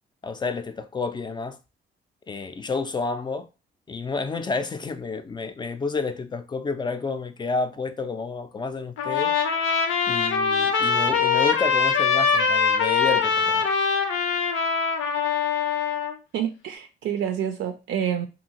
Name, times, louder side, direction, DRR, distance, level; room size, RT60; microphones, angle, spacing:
voice 1, 0.2-1.6 2.3-3.5 3.9-9.3 10.1-13.7, left 4 dB, 25° left, 0.3 m, -30 dB
Trumpet, 9.0-16.1, left 6 dB, 90° left, 0.6 m, -23 dB
voice 2, 16.3-18.3, right 9 dB, 75° right, 0.4 m, -28 dB
2.7 x 2.5 x 2.8 m
cardioid pair, 90°, 20 cm